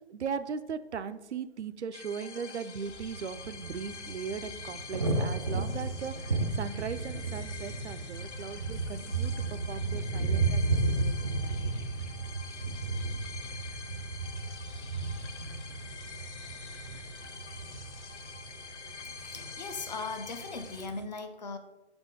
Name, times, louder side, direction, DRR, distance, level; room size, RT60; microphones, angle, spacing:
voice 1, 0.1-11.6, right 6 dB, 75° right, 12 dB, 0.6 m, -39 dB
sound 1, 1.9-20.9, left 5 dB, 80° left, 0.8 m, -46 dB
sound 2, 2.8-21.0, right 3 dB, 25° right, 0.4 m, -34 dB
voice 2, 19.1-21.6, left 4 dB, 40° left, 7 dB, 0.7 m, -39 dB
5.4 x 4.4 x 5.4 m, 1.0 s
figure-of-eight pair, 155°, 35 cm